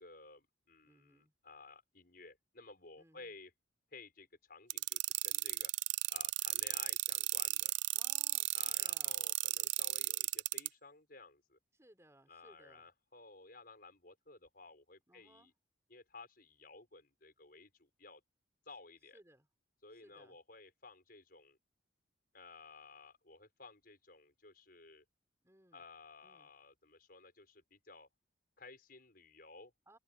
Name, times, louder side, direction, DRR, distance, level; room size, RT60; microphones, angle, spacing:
voice 1, 0.0-3.5 3.9-5.7 6.1-7.7 8.5-11.6 12.3-15.5 15.9-18.2 18.6-19.2 19.8-21.6 22.3-25.0 25.7-28.1 28.6-29.7, left 3 dB, 50° left, 6.4 m, -56 dB
voice 2, 0.8-1.3 3.0-3.4 7.9-9.2 11.7-12.9 15.1-15.5 19.1-19.5 19.9-20.4 25.4-25.8 26.2-26.5 29.9-30.0, right 1 dB, 15° right, 4.8 m, -64 dB
sound 1, 4.7-10.7, right 19 dB, 65° right, 0.4 m, -34 dB
open air
head